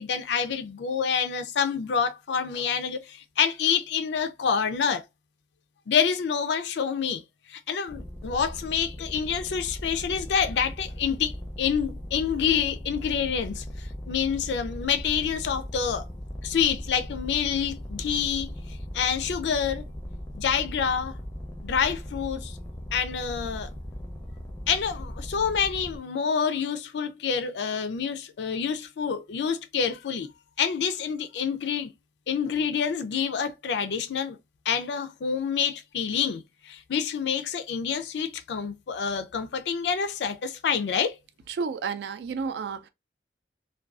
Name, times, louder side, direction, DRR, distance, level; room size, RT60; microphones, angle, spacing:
voice 1, 0.0-5.0 5.9-7.2 7.5-16.0 16.4-19.8 20.4-21.1 21.6-22.6 22.9-23.7 24.7-30.3 30.6-31.9 32.3-34.4 34.7-41.1, left 7 dB, 80° left, 0.4 m, -27 dB
sound 1, 7.9-26.0, equal, 10° left, 0.4 m, -38 dB
voice 2, 41.5-42.9, right 5 dB, 70° right, 0.3 m, -31 dB
2.5 x 2.2 x 2.3 m
head